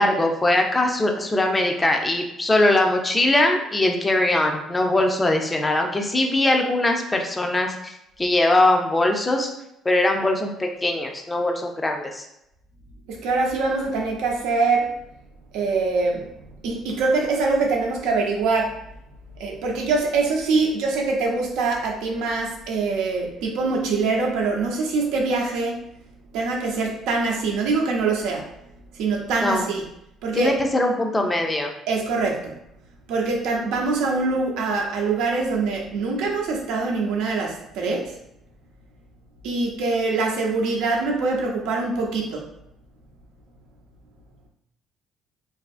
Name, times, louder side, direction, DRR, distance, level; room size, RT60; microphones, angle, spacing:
voice 1, 0.0-9.5 9.9-12.3 29.4-29.6 30.4-31.7, left 1 dB, 15° left, 3 dB, 0.4 m, -21 dB
voice 2, 13.1-14.9 15.5-16.3 16.6-18.8 19.4-25.9 26.3-28.5 28.9-29.8 30.2-30.6 31.9-32.5 33.1-38.2 39.4-42.4, right 3 dB, 85° right, 0 dB, 0.6 m, -24 dB
2.6 x 2.4 x 2.4 m, 0.82 s
cardioid pair, 105°, 0 cm